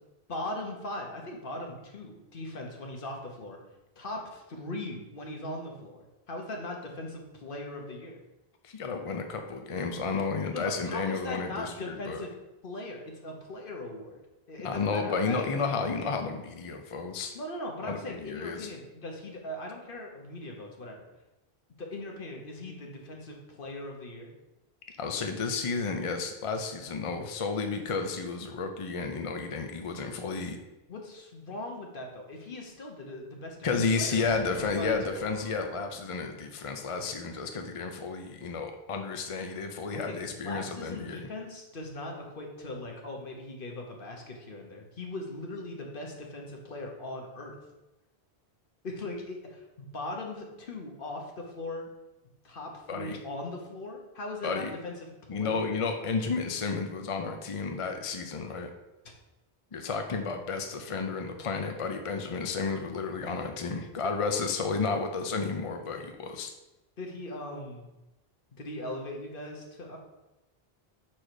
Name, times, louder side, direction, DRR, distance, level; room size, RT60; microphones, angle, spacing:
voice 1, 0.3-3.6 4.0-6.0 6.3-8.2 10.5-12.3 12.6-14.2 14.5-15.4 17.3-21.0 21.8-24.3 30.9-34.2 34.5-35.3 40.0-47.5 48.8-51.8 52.4-55.8 67.0-67.9 68.5-70.0, left 2 dB, 60° left, 1 dB, 1.3 m, -39 dB
voice 2, 8.6-12.2 14.6-17.3 17.8-18.7 25.0-30.6 33.6-41.3 52.9-53.2 54.4-54.7 55.3-58.7 59.7-66.5, left 4 dB, 40° left, 5 dB, 0.5 m, -32 dB
sound 1, 34.1-36.7, right 1 dB, 10° left, 1.1 m, -51 dB
4.8 x 4.4 x 6.0 m, 1.0 s
omnidirectional pair, 1.1 m